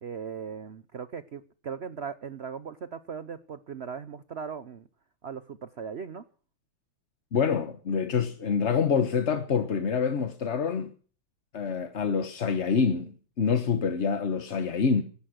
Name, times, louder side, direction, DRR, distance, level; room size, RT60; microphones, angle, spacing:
voice 1, 0.0-4.9 5.2-6.2, right 6 dB, 65° right, 0.6 m, -38 dB
voice 2, 7.3-10.9 11.5-13.1 13.4-15.0, left 6 dB, 40° left, 1.1 m, -26 dB
17.0 x 11.5 x 6.5 m
omnidirectional pair, 2.3 m